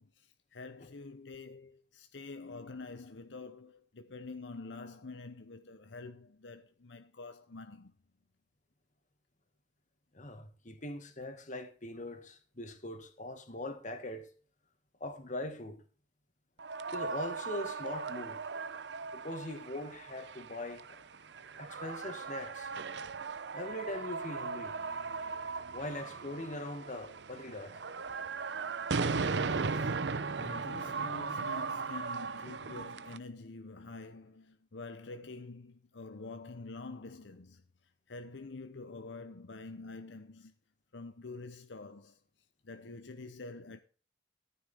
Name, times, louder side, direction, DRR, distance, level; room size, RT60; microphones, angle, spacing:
voice 1, 0.0-7.9 29.4-30.0 30.3-37.6 38.1-40.5 40.9-42.2 42.6-43.8, left 3 dB, 80° left, 0.9 m, -47 dB
voice 2, 10.1-14.3 15.0-15.8 16.9-18.4 19.1-21.0 21.6-22.7 23.5-24.7 25.7-27.8 29.3-29.8, left 1 dB, 45° left, 2.0 m, -41 dB
sound 1, 16.6-33.2, right 4 dB, 70° right, 0.7 m, -37 dB
14.0 x 9.4 x 3.6 m
head